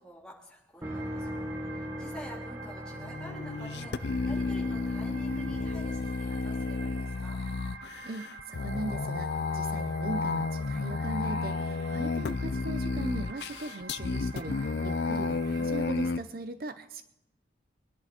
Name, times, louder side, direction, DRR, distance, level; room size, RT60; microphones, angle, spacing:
voice 1, 0.0-7.4, equal, 5° left, -3 dB, 3.5 m, -49 dB
sound 1, 0.8-6.7, equal, 15° right, 1.4 m, -40 dB
sound 2, 0.8-16.1, right 4 dB, 85° right, 2.5 m, -47 dB
sound 3, 2.9-16.2, left 4 dB, 70° left, 0.5 m, -32 dB
voice 2, 8.0-17.0, right 2 dB, 55° right, 11 dB, 0.6 m, -39 dB
24.0 x 10.5 x 4.3 m, 0.84 s
head